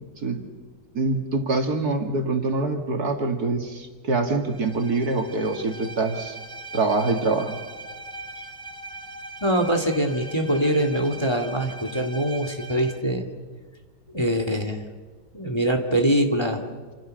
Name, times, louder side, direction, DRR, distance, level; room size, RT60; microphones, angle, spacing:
voice 1, 0.9-6.4 6.7-7.6, right 3 dB, 60° right, 4 dB, 2.7 m, -25 dB
Bowed string instrument, 4.4-13.1, right 2 dB, 15° right, 1.1 m, -40 dB
voice 2, 9.4-13.3 14.1-14.8 15.3-16.6, right 1 dB, 15° left, 5 dB, 2.1 m, -23 dB
28.0 x 26.5 x 6.5 m, 1.4 s
omnidirectional pair, 1.8 m